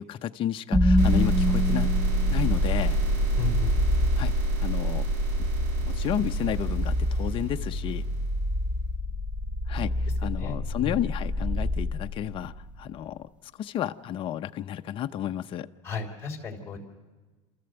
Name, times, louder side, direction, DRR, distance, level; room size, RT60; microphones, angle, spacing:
voice 1, 0.0-1.9 2.3-3.0 4.2-4.3 4.6-5.0 5.8-8.0 9.7-13.3 13.6-15.7, left 11 dB, 35° left, 7 dB, 0.6 m, -32 dB
sound 1, 0.7-12.8, left 1 dB, 10° right, 1.0 m, -27 dB
sound 2, 1.0-8.5, right 3 dB, 50° right, 2.0 m, -29 dB
voice 2, 3.4-3.7 10.4-11.0 15.8-16.8, left 4 dB, 15° left, -1 dB, 3.3 m, -34 dB
27.5 x 14.0 x 7.9 m, 1.3 s
supercardioid pair, 130°, 15 cm